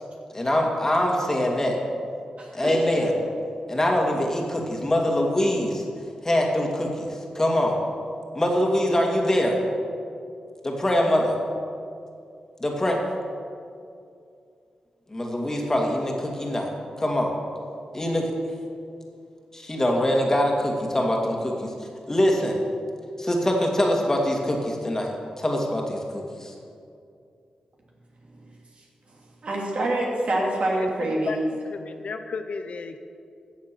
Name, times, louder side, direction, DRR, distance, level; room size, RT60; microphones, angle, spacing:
voice 1, 0.3-1.8 2.5-3.1 3.7-5.8 6.2-7.8 8.3-9.6 10.6-11.4 12.6-13.0 15.1-16.7 17.0-17.3 17.9-18.3 19.5-21.7 22.1-22.6 23.2-26.5, left 1 dB, 20° left, 0 dB, 2.3 m, -23 dB
voice 2, 2.4-2.7 28.3-28.5 29.4-31.5, right 1 dB, 55° right, -2 dB, 2.9 m, -26 dB
voice 3, 31.7-33.0, left 4 dB, 65° left, 8 dB, 0.7 m, -33 dB
15.0 x 7.3 x 6.2 m, 2.4 s
cardioid pair, 75°, 2 cm